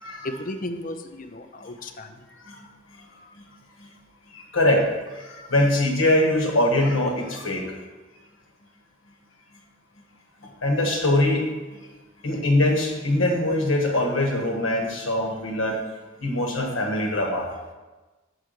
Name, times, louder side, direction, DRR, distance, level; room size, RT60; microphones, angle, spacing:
voice 1, 0.2-2.2, left 1 dB, 40° left, 7 dB, 0.6 m, -34 dB
voice 2, 4.3-4.9 5.1-7.6 10.6-11.4 12.2-15.8 16.2-17.5, left 1 dB, 80° left, 1 dB, 1.4 m, -22 dB
5.9 x 4.8 x 6.6 m, 1.2 s
head